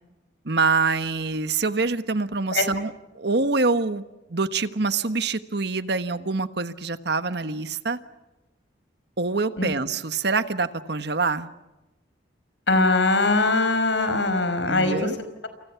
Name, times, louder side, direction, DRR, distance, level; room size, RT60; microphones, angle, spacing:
voice 1, 0.4-4.0 4.3-8.0 9.2-11.5 14.7-15.2, right 4 dB, 60° right, 11 dB, 1.4 m, -25 dB
voice 2, 12.7-15.1, left 2 dB, 75° left, 9 dB, 5.1 m, -21 dB
29.5 x 29.0 x 5.9 m, 1.0 s
head